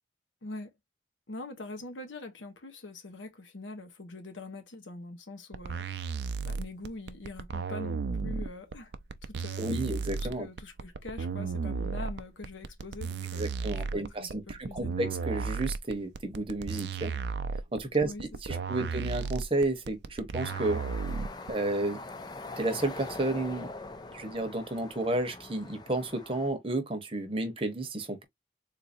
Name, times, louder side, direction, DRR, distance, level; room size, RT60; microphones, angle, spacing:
voice 1, 0.4-0.7 1.3-5.9 6.4-8.9 9.2-9.7 10.2-15.0 18.0-18.2 18.5-18.6, left 2 dB, 90° left, 1.1 m, -43 dB
sound 1, 5.5-21.5, right 5 dB, 65° right, 0.4 m, -34 dB
voice 2, 9.6-10.5 13.4-17.2 17.7-18.1 18.4-20.8 21.5-22.0 22.6-23.7 24.1-28.2, right 2 dB, 30° right, 0.9 m, -31 dB
sound 2, 20.4-26.5, left 3 dB, 20° left, 0.4 m, -43 dB
3.8 x 2.5 x 2.6 m
head